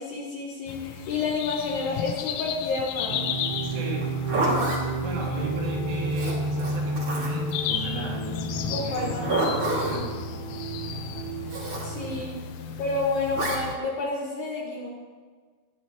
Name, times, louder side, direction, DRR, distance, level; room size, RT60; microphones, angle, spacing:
voice 1, 0.0-3.3 8.7-9.4 11.8-12.4 12.8-14.9, left 3 dB, 65° left, -3 dB, 2.8 m, -30 dB
sound 1, 0.7-13.8, left 8 dB, 90° left, 3.4 m, -35 dB
sound 2, 3.1-12.3, right 3 dB, 90° right, 2.3 m, -31 dB
voice 2, 3.6-8.3 8.6-10.2 10.8-11.3 12.0-12.8, right 1 dB, 70° right, -4 dB, 4.8 m, -38 dB
Zipper (clothing), 4.0-4.8 6.1-7.5 8.9-10.0 11.5-11.9 13.3-13.6, right 1 dB, 40° right, 1.9 m, -28 dB
19.0 x 9.8 x 3.0 m, 1.5 s
omnidirectional pair, 5.9 m